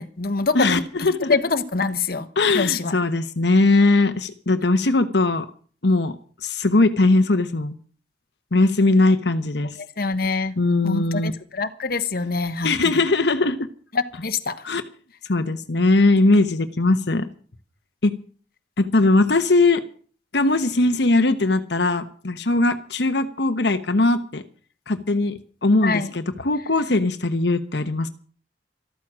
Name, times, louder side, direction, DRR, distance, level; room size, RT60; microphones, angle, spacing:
voice 1, 0.0-0.8 1.2-2.3 2.5-2.9 10.0-10.5 10.8-12.7 13.9-14.6 25.8-26.1, left 4 dB, 55° left, 9 dB, 1.2 m, -24 dB
voice 2, 0.5-1.4 2.4-5.5 5.8-7.7 8.5-9.8 10.6-11.3 12.6-13.7 14.6-14.8 15.2-17.3 18.0-18.1 18.8-19.8 20.3-24.4 24.9-28.1, left 2 dB, 70° left, 8 dB, 1.1 m, -20 dB
14.0 x 13.5 x 6.2 m, 0.43 s
head